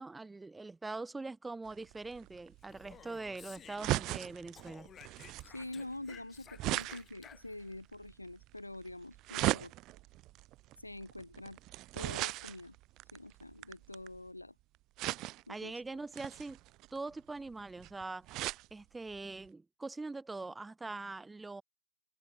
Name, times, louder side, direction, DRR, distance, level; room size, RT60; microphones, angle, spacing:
voice 1, 0.0-4.9 15.5-16.6 16.9-18.3 18.7-21.6, right 3 dB, 5° right, 5.3 m, -43 dB
sound 1, 1.7-14.3 15.0-15.6 16.1-18.7 19.1-19.2 19.5-19.6, right 18 dB, 30° right, 3.1 m, -39 dB
Speech, 2.6-4.3 4.6-7.7, left 8 dB, 20° left, 5.9 m, -55 dB
voice 2, 5.4-9.7 10.8-11.6 11.9-12.8 13.1-14.6 15.5-16.0, left 1 dB, 90° left, 2.1 m, -46 dB
figure-of-eight pair, 115°, 0 cm